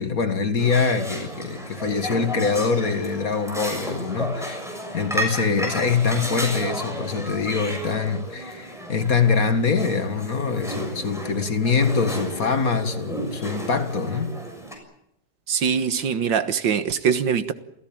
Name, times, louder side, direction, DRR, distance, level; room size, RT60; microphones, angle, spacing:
voice 1, 0.0-4.6 4.9-14.4, left 5 dB, 45° left, 2.2 m, -24 dB
sound 1, 0.6-14.7, equal, ahead, 6.7 m, -33 dB
voice 2, 15.5-17.5, right 7 dB, 70° right, 1.9 m, -22 dB
28.5 x 16.0 x 8.9 m
omnidirectional pair, 2.1 m